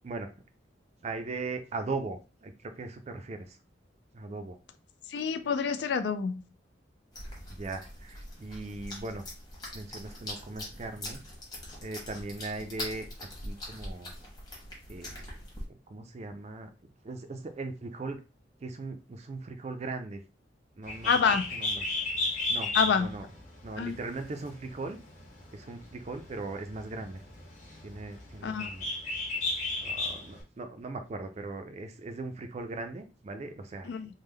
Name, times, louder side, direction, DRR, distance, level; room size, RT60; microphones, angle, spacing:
voice 1, 1.0-3.6 4.1-4.6 7.5-9.3 9.7-11.2 11.8-13.1 13.4-14.1 14.9-15.3 15.7-16.7 17.0-18.2 18.6-20.2 20.8-21.1 21.5-21.9 22.5-23.3 23.6-25.0 25.5-27.2 27.8-29.0 29.8-33.9, right 3 dB, 35° right, 0.4 m, -39 dB
voice 2, 5.1-6.4 21.1-21.5 22.7-23.1 23.8-24.0 28.4-28.7 33.9-34.1, left 6 dB, 65° left, 0.3 m, -27 dB
sound 1, 7.1-15.6, left 1 dB, 20° left, 1.2 m, -43 dB
Bird, 20.8-30.4, left 2 dB, 40° left, 1.4 m, -34 dB
3.5 x 2.1 x 3.2 m
head